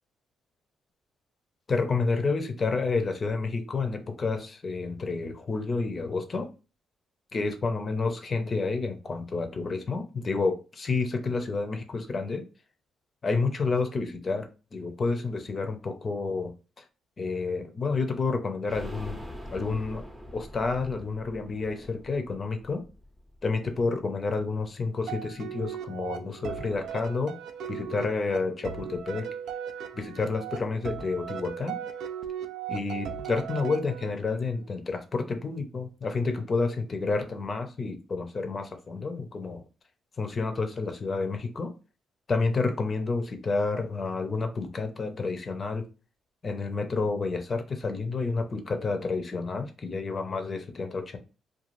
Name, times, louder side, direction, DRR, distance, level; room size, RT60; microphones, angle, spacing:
voice 1, 1.7-6.5 7.3-12.4 13.2-16.5 17.2-19.2 19.5-20.0 20.3-22.8 23.4-27.4 27.7-29.3 30.0-31.8 32.7-39.6 40.2-41.7 42.3-45.8 46.4-51.2, left 4 dB, 40° left, 0.6 m, -29 dB
sound 1, 18.7-24.3 24.6-24.7 25.0-25.1, equal, 5° right, 0.6 m, -44 dB
sound 2, 25.1-34.4, right 9 dB, 70° right, 0.3 m, -38 dB
2.5 x 2.3 x 3.0 m
cardioid pair, 90°, 0 cm